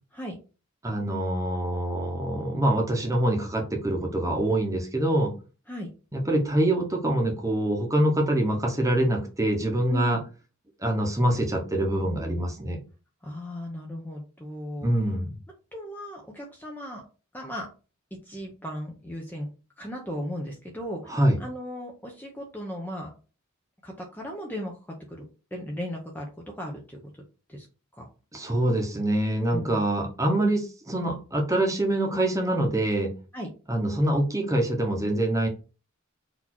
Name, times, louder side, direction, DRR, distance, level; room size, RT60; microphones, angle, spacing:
voice 1, 0.8-5.3 6.1-10.2 10.8-12.8 14.8-15.3 21.1-21.4 28.3-33.1 33.7-35.5, right 1 dB, 15° right, 1 dB, 1.0 m, -25 dB
voice 2, 9.9-10.2 13.2-14.9 15.7-17.0 17.3-17.7 18.3-19.5 19.8-21.1 21.4-23.1 23.8-25.3 25.5-27.1 27.5-27.7 27.9-28.1 29.5-29.8 33.3-33.5, equal, 10° left, 0 dB, 0.7 m, -36 dB
4.1 x 2.8 x 4.4 m, 0.34 s
head